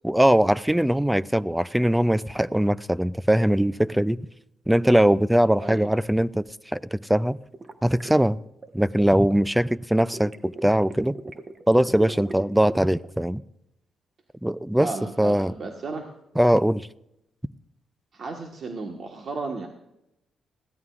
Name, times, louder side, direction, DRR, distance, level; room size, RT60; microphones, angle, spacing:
voice 1, 0.0-4.2 4.7-6.5 6.7-7.4 7.8-8.4 8.7-11.2 11.7-13.4 14.4-14.9 15.2-15.5 16.4-16.9, right 1 dB, 5° right, 0.4 m, -21 dB
sound 1, 7.5-9.4 10.0-13.1, right 3 dB, 30° right, 1.0 m, -39 dB
voice 2, 14.8-16.1 18.1-19.7, right 3 dB, 50° right, 1.5 m, -34 dB
20.5 x 15.5 x 2.5 m
cardioid pair, 105°, 0 cm